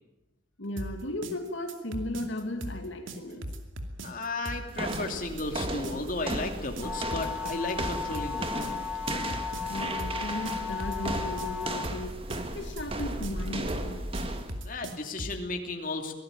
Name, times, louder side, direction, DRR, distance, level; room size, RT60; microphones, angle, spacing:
voice 1, 0.6-3.5 9.7-12.3 12.5-14.1, left 1 dB, 70° left, 5 dB, 2.4 m, -36 dB
sound 1, 0.8-15.5, right 1 dB, 80° right, 2.6 m, -39 dB
voice 2, 4.0-8.8 14.6-16.1, left 2 dB, 45° left, 3 dB, 2.8 m, -34 dB
sound 2, 4.7-14.6, right 2 dB, 30° right, 1.8 m, -36 dB
sound 3, 6.8-11.8, left 6 dB, ahead, 6.3 m, -35 dB
24.0 x 17.5 x 9.1 m, 0.99 s
head